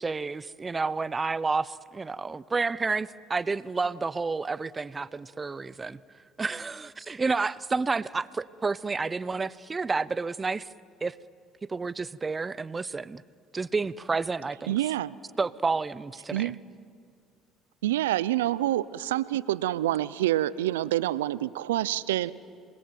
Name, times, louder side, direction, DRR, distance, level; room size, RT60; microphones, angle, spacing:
voice 1, 0.0-6.0 6.4-10.7 11.0-11.2 11.7-13.2 13.5-14.8 15.4-16.5, right 4 dB, 25° right, 20 dB, 0.8 m, -30 dB
voice 2, 14.7-15.1 16.3-16.6 17.8-22.3, right 14 dB, 90° right, 19 dB, 0.6 m, -27 dB
27.5 x 21.5 x 9.3 m, 2.3 s
hypercardioid pair, 65°, 0 cm